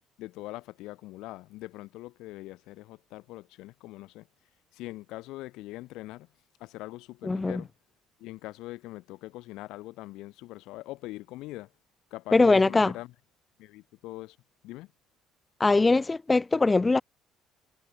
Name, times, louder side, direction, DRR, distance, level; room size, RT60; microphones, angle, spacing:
voice 1, 0.2-4.3 4.7-6.3 6.6-7.7 8.2-11.7 12.1-13.1 13.6-14.4 14.6-14.9, left 18 dB, 65° left, 7.4 m, -42 dB
voice 2, 7.2-7.6 12.3-12.9 15.6-17.0, left 3 dB, 20° left, 0.5 m, -21 dB
figure-of-eight pair, 55°, 0 cm